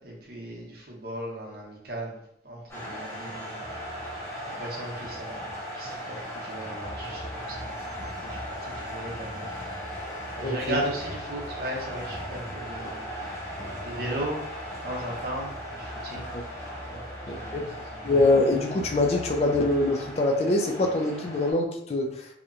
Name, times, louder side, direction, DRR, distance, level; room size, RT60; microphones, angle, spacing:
voice 1, 0.0-2.1 2.4-3.6 4.5-9.5 10.4-13.0 13.8-14.4 14.8-16.3 16.9-17.0 17.3-17.6 17.9-18.0, right 1 dB, 55° right, -2 dB, 0.7 m, -36 dB
sound 1, 2.7-21.5, equal, 15° left, 0.7 m, -37 dB
voice 2, 10.4-10.8 16.3-16.4 17.3-17.8 18.0-22.3, left 2 dB, 35° left, 2 dB, 0.3 m, -24 dB
2.8 x 2.1 x 2.4 m, 0.70 s
head